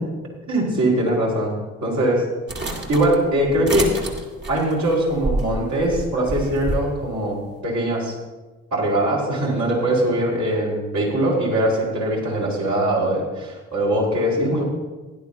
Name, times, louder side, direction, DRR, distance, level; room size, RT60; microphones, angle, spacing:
voice 1, 0.5-1.5 1.8-2.2 2.9-3.9 4.5-8.2 8.7-14.6, right 1 dB, 50° right, -4 dB, 4.7 m, -21 dB
sound 1, 2.5-6.8, right 1 dB, 30° right, 2.4 m, -28 dB
17.0 x 11.0 x 2.8 m, 1.2 s
hypercardioid pair, 45°, 35 cm